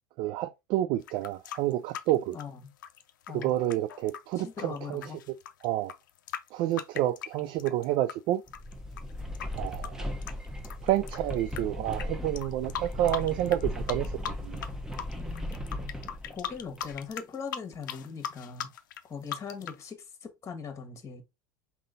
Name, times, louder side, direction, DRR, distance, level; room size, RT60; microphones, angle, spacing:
voice 1, 0.2-2.4 3.3-5.1 5.6-5.9 6.5-8.4 9.5-10.1 10.8-14.6, right 13 dB, 55° right, 0.3 m, -29 dB
sound 1, 1.0-8.1 8.5-11.6 11.9-12.1 12.4-13.6 13.9-14.7 14.9-19.8, left 9 dB, 80° left, 0.5 m, -39 dB
voice 2, 4.4-5.2 15.2-15.9 16.3-18.7 19.1-21.2, left 6 dB, 30° left, 1.3 m, -41 dB
sound 2, 8.5-17.0, left 1 dB, 5° right, 0.9 m, -37 dB
3.8 x 2.8 x 3.8 m
hypercardioid pair, 85°, 10 cm